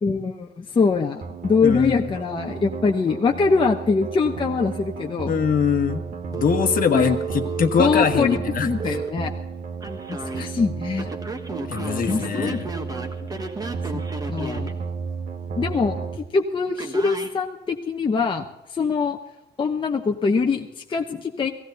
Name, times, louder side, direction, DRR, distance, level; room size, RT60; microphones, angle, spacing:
voice 1, 0.0-5.4 6.9-7.1 7.8-9.3 10.1-11.1 12.1-12.9 13.2-13.3 13.9-14.0 14.3-14.7 15.6-16.0 16.3-18.4 18.7-19.2 19.6-21.5, left 4 dB, 30° left, 2 dB, 0.9 m, -23 dB
sound 1, 1.2-16.2, right 5 dB, 50° right, 1.3 m, -33 dB
voice 2, 1.6-2.1 5.2-6.1 6.3-8.9 10.4-10.5 11.7-12.7, left 6 dB, 50° left, 6 dB, 1.3 m, -23 dB
Telephone, 6.3-9.1 9.8-10.4 11.0-14.7 16.8-17.3, right 4 dB, 20° right, 1.4 m, -32 dB
17.0 x 15.5 x 3.9 m, 0.93 s
cardioid pair, 160°, 18 cm